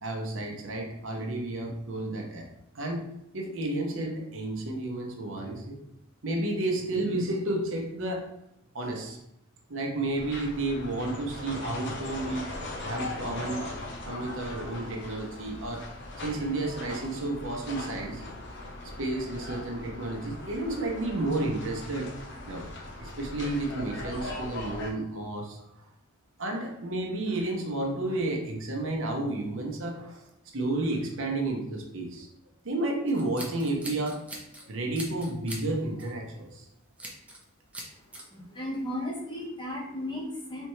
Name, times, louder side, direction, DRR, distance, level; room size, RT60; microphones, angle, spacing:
voice 1, 0.0-2.5 2.7-5.8 6.2-8.4 8.7-9.2 9.7-15.8 16.2-18.2 19.0-22.1 22.5-22.7 23.0-25.6 26.4-30.2 30.5-32.3 32.6-34.4 34.7-36.7, right 2 dB, 65° right, 1 dB, 0.9 m, -31 dB
sound 1, 10.2-24.9, left 2 dB, 55° left, 0.7 m, -40 dB
Scissors, 33.1-34.6 34.9-35.7 36.0-36.2 37.0-37.4 37.7-38.2, right 1 dB, 5° right, 0.8 m, -41 dB
voice 2, 38.3-40.7, left 1 dB, 20° left, -3 dB, 1.2 m, -35 dB
4.3 x 3.3 x 3.2 m, 0.81 s
head